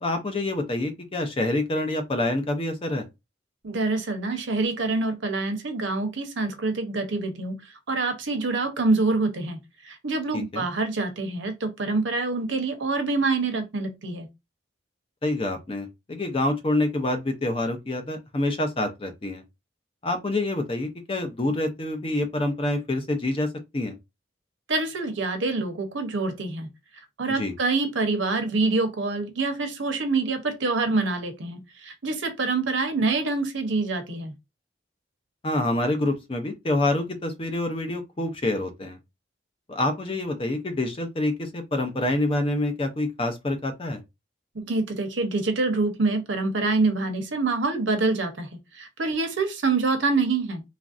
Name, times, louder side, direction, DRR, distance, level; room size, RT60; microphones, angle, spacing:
voice 1, 0.0-3.0 10.3-10.6 15.2-19.4 20.0-23.5 23.7-23.9 27.4-27.5 35.4-39.0 39.7-44.0, left 1 dB, 30° left, 0.5 m, -27 dB
voice 2, 3.6-7.6 7.9-14.3 24.7-26.7 27.2-34.3 44.5-48.5 48.7-50.6, right 3 dB, 85° right, 0.8 m, -26 dB
3.1 x 2.5 x 2.5 m
head